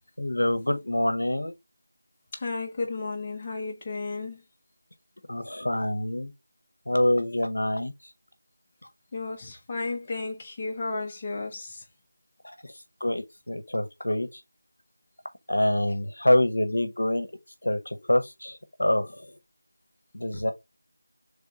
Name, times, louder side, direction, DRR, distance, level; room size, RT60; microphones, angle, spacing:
voice 1, 0.2-1.5 5.3-6.3 6.9-7.9 12.4-12.5 13.0-14.4 15.5-17.3 17.6-19.3 20.1-20.5, left 1 dB, 65° left, 0.8 m, -26 dB
voice 2, 2.3-4.4 9.1-11.8, left 3 dB, 20° left, 0.7 m, -33 dB
3.6 x 3.3 x 3.8 m
figure-of-eight pair, 170°, 0 cm